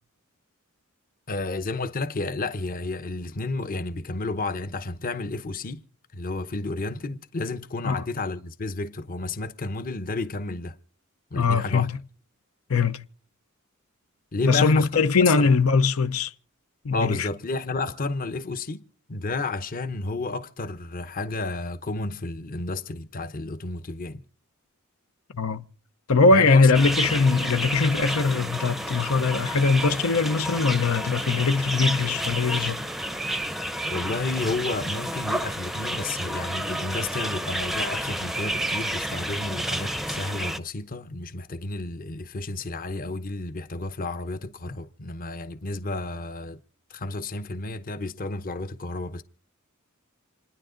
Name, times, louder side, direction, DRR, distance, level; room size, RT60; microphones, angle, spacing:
voice 1, 1.3-5.8 6.1-10.8 11.3-11.9 14.3-14.9 15.3-15.5 16.9-18.8 19.1-24.2 26.3-26.7 33.9-46.6 46.9-49.2, left 3 dB, 40° left, 0.8 m, -31 dB
voice 2, 11.3-11.9 12.7-13.0 14.4-16.3 16.8-17.3 25.3-25.6 26.1-32.8, left 4 dB, 90° left, 0.7 m, -21 dB
sound 1, 26.7-40.6, right 1 dB, ahead, 0.6 m, -30 dB
28.5 x 10.0 x 3.8 m
head